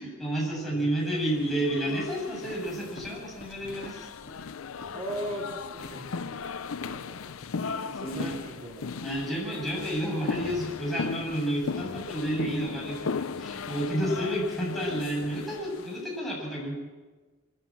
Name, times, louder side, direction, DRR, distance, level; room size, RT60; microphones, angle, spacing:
voice 1, 0.0-4.1 7.8-8.4 9.0-16.7, right 1 dB, ahead, -5 dB, 7.7 m, -31 dB
sound 1, 1.0-9.8, left 1 dB, 50° left, 4.5 m, -52 dB
sound 2, 1.3-16.0, left 5 dB, 75° left, 0.6 m, -37 dB
voice 2, 4.9-7.4 8.0-8.9, equal, 30° right, -1 dB, 4.2 m, -39 dB
25.5 x 14.0 x 7.6 m, 1.3 s
head